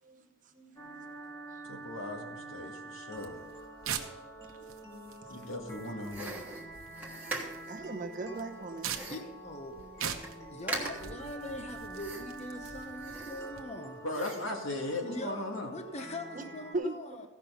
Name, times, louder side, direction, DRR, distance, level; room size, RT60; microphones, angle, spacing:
voice 1, 0.0-1.1 1.5-1.6 4.4-5.5 7.2-7.3 7.7-9.0 16.3-16.4 16.7-17.0, right 2 dB, 35° right, 5 dB, 0.9 m, -40 dB
sound 1, 0.8-16.8, right 2 dB, 15° left, 1.6 m, -47 dB
voice 2, 1.6-3.4 5.3-6.4 14.0-15.7, left 2 dB, 70° left, 1 dB, 2.0 m, -38 dB
sound 2, 3.2-13.6, right 8 dB, 80° right, 1.0 m, -44 dB
sound 3, 6.1-7.8 8.8-9.4 9.8-9.9 10.1-10.4 10.7-11.2 12.0-12.5 12.9-13.8 14.1-14.6, right 2 dB, 10° right, 1.4 m, -40 dB
voice 3, 9.1-9.7 10.5-14.0 15.0-17.2, left 1 dB, 30° left, 6 dB, 0.9 m, -42 dB
16.0 x 5.9 x 5.7 m, 1.1 s
head